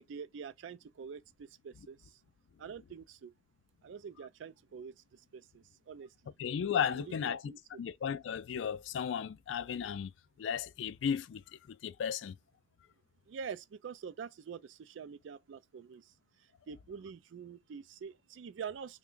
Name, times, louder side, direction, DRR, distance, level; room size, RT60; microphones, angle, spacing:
voice 1, 0.0-2.2 2.6-3.3 3.8-6.3 7.0-7.8 13.3-16.1 16.7-19.0, right 6 dB, 85° right, 0.4 m, -46 dB
voice 2, 6.4-7.5 7.8-10.1 10.4-12.4, left 7 dB, 85° left, 0.3 m, -35 dB
3.4 x 2.2 x 3.7 m
head